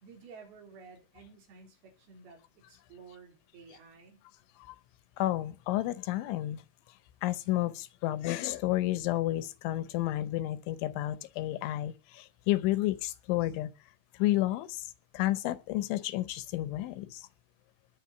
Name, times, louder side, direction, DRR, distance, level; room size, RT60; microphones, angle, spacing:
voice 1, 0.0-4.2, right 5 dB, 50° right, 5.8 m, -53 dB
voice 2, 5.2-6.6 7.2-13.7 14.1-14.9 15.1-17.3, left 15 dB, 80° left, 3.1 m, -31 dB
20.5 x 7.4 x 5.7 m
omnidirectional pair, 5.8 m